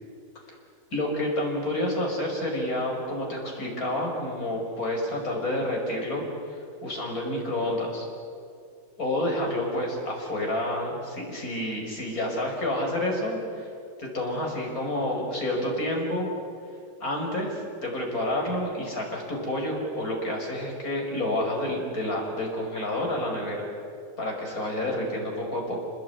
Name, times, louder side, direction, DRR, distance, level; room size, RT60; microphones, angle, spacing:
voice 1, 0.9-6.2 6.5-8.1 9.0-13.7 14.0-16.3 17.0-23.7 24.2-25.8, left 1 dB, 45° left, 0 dB, 6.0 m, -29 dB
27.5 x 20.5 x 9.6 m, 2.4 s
omnidirectional pair, 2.1 m